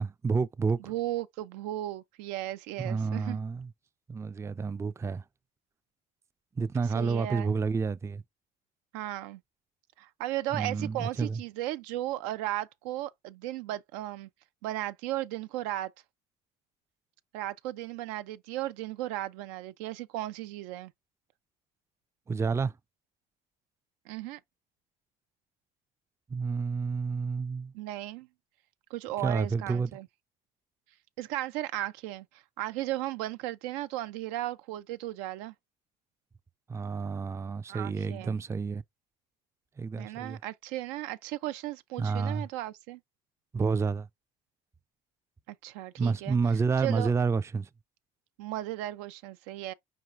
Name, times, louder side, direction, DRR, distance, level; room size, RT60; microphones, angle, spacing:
voice 1, 0.0-0.9 2.8-3.7 4.1-5.2 6.6-8.2 10.5-11.4 22.3-22.7 26.3-27.7 29.2-29.9 36.7-38.8 39.8-40.4 42.0-42.5 43.5-44.1 46.0-47.7, right 5 dB, 15° right, 0.3 m, -29 dB
voice 2, 0.8-3.4 6.9-7.6 8.9-9.4 10.0-14.3 14.6-15.9 17.3-20.9 24.1-24.4 27.7-28.3 28.9-30.1 31.2-35.5 37.7-38.4 40.0-43.0 45.5-46.4 46.8-47.1 48.4-49.7, right 15 dB, 90° right, 0.5 m, -35 dB
4.8 x 4.5 x 2.4 m
supercardioid pair, 80°, 20 cm